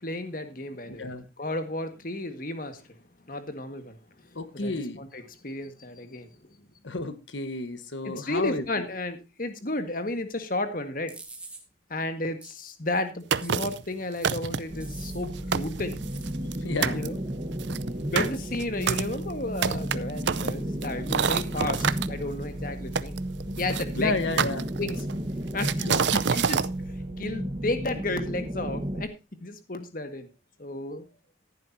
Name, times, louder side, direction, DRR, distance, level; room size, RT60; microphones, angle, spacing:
voice 1, 0.0-1.1 1.4-2.8 3.3-4.0 4.3-6.3 8.0-11.1 11.9-16.0 16.9-17.2 18.1-23.1 23.6-24.1 24.8-25.0 25.5-26.6 27.2-29.1 29.4-30.3 30.6-31.1, left 2 dB, 45° left, 8 dB, 1.6 m, -33 dB
voice 2, 0.9-1.2 4.3-5.0 6.8-8.6 16.6-17.1 23.9-24.7 25.8-26.1, left 2 dB, 85° left, 10 dB, 1.4 m, -31 dB
sound 1, 11.1-11.6 12.4-12.5 13.4-13.9 14.8-15.2 16.1-16.3, right 3 dB, 5° right, 2.1 m, -45 dB
sound 2, 13.3-13.8 14.2-14.8 15.2-15.3 15.5-16.6 16.8-17.1 17.6-22.1 22.9-23.8 24.4-25.1 25.6-26.7, right 6 dB, 70° right, 0.6 m, -27 dB
sound 3, 14.7-29.1, right 1 dB, 30° right, 1.3 m, -33 dB
14.5 x 11.5 x 2.7 m, 0.27 s
head